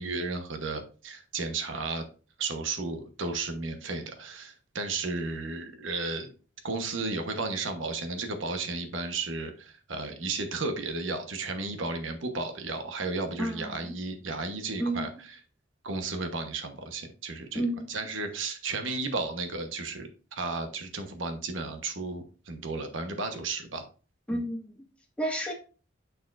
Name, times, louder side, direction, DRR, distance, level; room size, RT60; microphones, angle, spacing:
voice 1, 0.0-2.0 2.4-6.3 6.6-15.1 15.8-23.8 24.3-24.4, right 3 dB, 80° right, 7 dB, 1.1 m, -33 dB
voice 2, 13.4-13.9 14.8-15.1 17.5-17.8 24.3-24.7 25.2-25.5, right 1 dB, 5° left, -1 dB, 1.7 m, -31 dB
6.9 x 6.3 x 2.5 m, 0.37 s
head